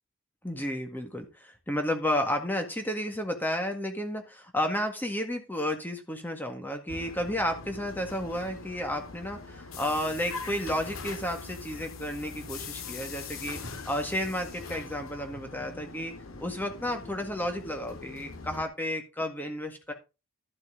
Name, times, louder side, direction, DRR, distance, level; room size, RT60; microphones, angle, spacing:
voice 1, 0.4-16.1 16.4-19.9, left 1 dB, 10° left, 5 dB, 1.7 m, -32 dB
sound 1, 6.9-18.7, left 4 dB, 85° left, 1.9 m, -42 dB
12.5 x 8.0 x 3.8 m, 0.28 s
head